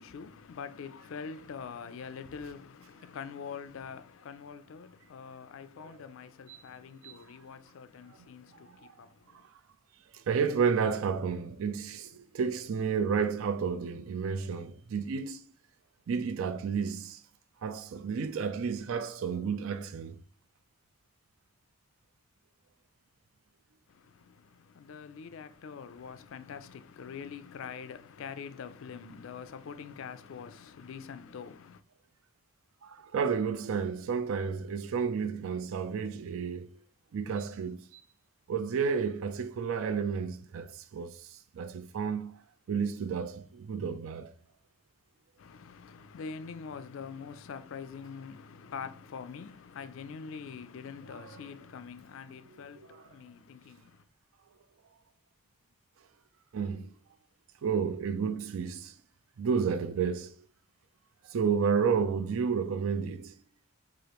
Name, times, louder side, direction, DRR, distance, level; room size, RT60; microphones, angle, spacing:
voice 1, 0.0-9.5 23.9-31.8 45.4-54.0, left 6 dB, 60° left, 0.3 m, -44 dB
voice 2, 10.1-15.4 16.1-17.2 17.6-20.2 32.8-36.7 37.1-38.0 38.5-42.4 42.7-44.3 51.1-51.2 52.8-53.1 56.5-56.9 57.6-58.9 59.4-60.3 61.2-63.3, right 6 dB, 65° right, 0.4 m, -31 dB
4.8 x 2.4 x 2.9 m
head